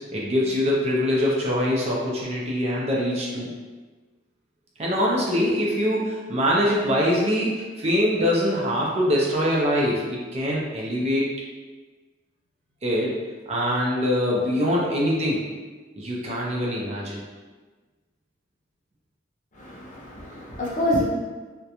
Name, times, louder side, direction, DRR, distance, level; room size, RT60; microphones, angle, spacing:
voice 1, 0.1-3.5 4.8-11.3 12.8-13.2 13.5-15.4 16.0-17.2, equal, 35° right, -4 dB, 0.4 m, -23 dB
voice 2, 19.6-21.0, left 1 dB, 40° left, -5 dB, 0.5 m, -26 dB
2.4 x 2.1 x 2.8 m, 1.3 s
head